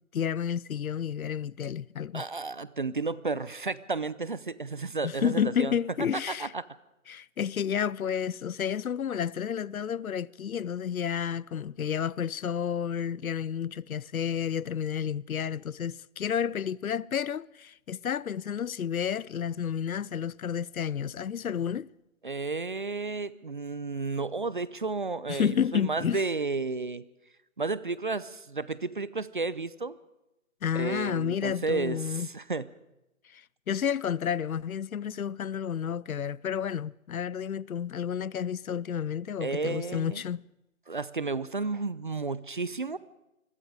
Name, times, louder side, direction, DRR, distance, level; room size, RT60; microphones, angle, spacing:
voice 1, 0.1-2.2 5.0-6.5 7.1-21.9 25.3-26.2 30.6-32.3 33.3-40.4, left 8 dB, 80° left, 0.7 m, -31 dB
voice 2, 2.1-5.7 6.4-6.6 22.2-27.0 27.6-30.0 30.7-32.7 39.4-40.2 40.9-43.0, right 3 dB, 35° right, 0.7 m, -32 dB
27.5 x 22.0 x 4.9 m
hypercardioid pair, 170°, 42 cm